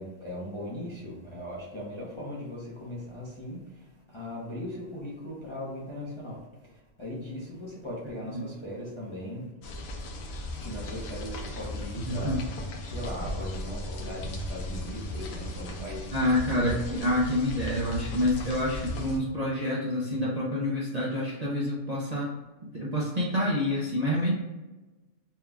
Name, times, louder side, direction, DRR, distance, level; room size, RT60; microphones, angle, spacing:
voice 1, 0.0-6.7 7.0-9.5 10.6-12.4 12.8-16.3 16.5-16.8, left 1 dB, 25° left, -6 dB, 0.7 m, -39 dB
sound 1, 9.6-19.2, left 1 dB, 85° left, 1.1 m, -36 dB
voice 2, 12.1-12.4 16.1-22.3 22.7-24.3, left 1 dB, 40° right, -6 dB, 0.6 m, -27 dB
4.3 x 2.3 x 3.5 m, 1.1 s
omnidirectional pair, 1.4 m